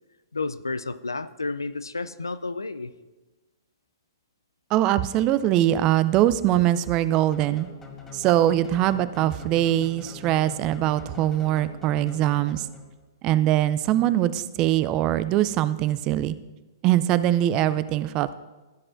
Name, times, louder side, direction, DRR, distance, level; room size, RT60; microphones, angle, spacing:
voice 1, 0.3-2.9, left 3 dB, 85° left, 14 dB, 0.4 m, -31 dB
voice 2, 4.7-7.7 8.1-12.7 13.2-16.3 16.8-18.3, right 13 dB, 35° right, 15 dB, 0.4 m, -22 dB
sound 1, 7.3-13.1, left 5 dB, 15° left, 1.3 m, -43 dB
15.5 x 7.7 x 2.5 m, 1.2 s
figure-of-eight pair, 110°, 2 cm